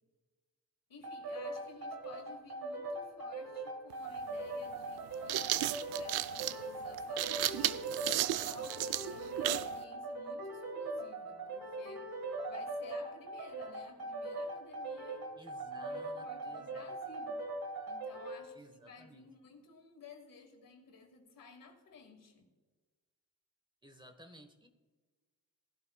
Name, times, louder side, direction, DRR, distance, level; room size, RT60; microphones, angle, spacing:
voice 1, 0.9-17.4 17.9-22.5, left 4 dB, 60° left, 3 dB, 2.2 m, -55 dB
sound 1, 1.0-18.5, right 2 dB, 70° right, 2.0 m, -41 dB
sound 2, 3.9-4.0 5.0-9.7, right 14 dB, 85° right, 0.5 m, -34 dB
voice 2, 15.4-17.0 18.5-19.3 23.8-24.7, right 1 dB, 10° right, 7 dB, 1.4 m, -57 dB
18.5 x 11.5 x 2.4 m, 1.4 s
supercardioid pair, 60°, 37 cm